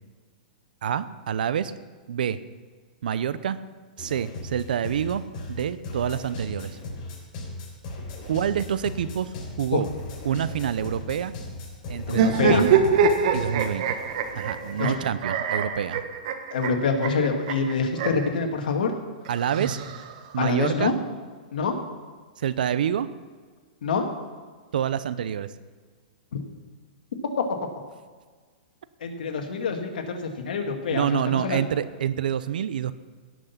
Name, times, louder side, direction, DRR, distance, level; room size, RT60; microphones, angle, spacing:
voice 1, 0.8-1.7 2.1-2.4 3.0-3.6 4.0-5.2 5.5-6.7 8.3-9.3 9.6-9.9 10.2-11.3 11.9-12.7 13.3-14.0 14.4-16.0 19.3-19.8 20.3-20.9 22.4-23.1 24.7-25.5 30.9-32.9, right 9 dB, 75° right, 15 dB, 0.7 m, -27 dB
sound 1, 4.0-15.1, left 2 dB, 40° left, 3.7 m, -38 dB
voice 2, 12.1-12.7 14.8-14.9 16.5-19.0 20.4-20.9 21.5-21.8 23.8-24.0 26.3-26.4 29.0-31.7, left 5 dB, 75° left, 3 dB, 2.0 m, -26 dB
sound 2, 12.1-18.3 19.3-20.4, right 6 dB, 50° right, 1.3 m, -24 dB
17.5 x 6.3 x 5.9 m, 1.5 s
hypercardioid pair, 150°, 5 cm